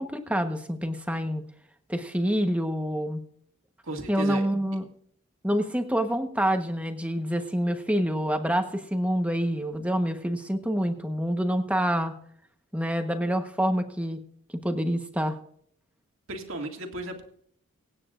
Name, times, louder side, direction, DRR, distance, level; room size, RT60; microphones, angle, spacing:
voice 1, 0.0-1.4 1.9-3.2 4.1-4.8 5.4-12.1 12.7-14.2 14.6-15.4, equal, 5° right, 6 dB, 1.1 m, -27 dB
voice 2, 3.8-4.4 16.3-17.2, right 2 dB, 65° right, 3 dB, 2.2 m, -34 dB
24.5 x 9.5 x 2.5 m, 0.63 s
head